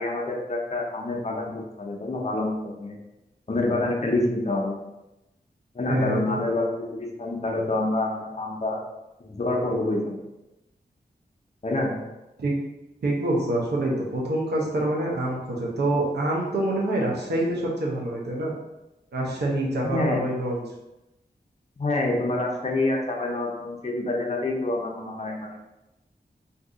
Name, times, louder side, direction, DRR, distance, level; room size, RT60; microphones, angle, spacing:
voice 1, 0.0-1.5 1.8-3.0 3.5-4.7 5.7-8.8 9.2-10.1 11.6-11.9 19.8-20.2 21.8-25.6, left 2 dB, 40° left, 0 dB, 0.7 m, -27 dB
voice 2, 5.9-6.4 12.4-12.6 13.0-18.5 19.1-20.6, right 1 dB, 85° right, -3 dB, 0.8 m, -26 dB
2.7 x 2.6 x 3.7 m, 0.96 s
cardioid pair, 50°, 17 cm